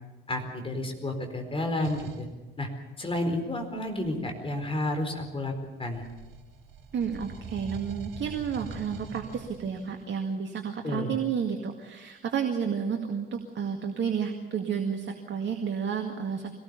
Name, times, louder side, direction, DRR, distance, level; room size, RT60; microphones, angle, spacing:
voice 1, 0.3-2.3 2.6-2.7 3.0-5.5 5.8-6.0 10.8-11.1, left 1 dB, 20° left, 4 dB, 4.5 m, -31 dB
sound 1, 1.8-2.3 3.6-5.5 5.9-10.1, right 4 dB, 55° right, 2.5 m, -44 dB
voice 2, 6.9-16.5, right 7 dB, 40° right, 4 dB, 2.0 m, -31 dB
23.5 x 18.5 x 7.0 m, 1.2 s
figure-of-eight pair, 55°, 29 cm